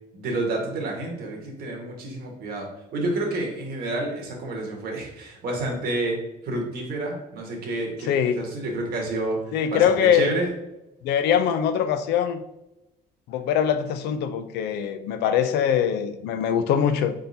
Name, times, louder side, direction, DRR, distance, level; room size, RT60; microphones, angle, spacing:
voice 1, 0.1-6.2 6.4-10.5, right 2 dB, 65° right, 1.4 m, -29 dB
voice 2, 8.1-8.4 9.5-10.3 11.0-12.4 13.3-17.1, left 8 dB, 80° left, 0.4 m, -22 dB
4.0 x 3.7 x 2.7 m
cardioid pair, 110°, 17 cm